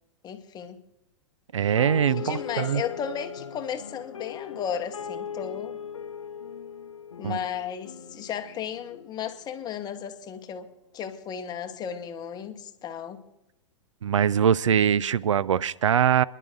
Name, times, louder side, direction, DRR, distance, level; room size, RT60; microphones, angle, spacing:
voice 1, 0.2-0.8 2.1-5.8 7.2-10.7 10.9-13.2, left 8 dB, 25° left, 1.1 m, -34 dB
voice 2, 1.5-2.8 7.2-7.4 14.0-16.2, right 8 dB, 80° right, 0.4 m, -22 dB
sound 1, 1.8-9.8, left 7 dB, 85° left, 0.6 m, -39 dB
30.0 x 11.0 x 2.5 m
hypercardioid pair, 110°, 16 cm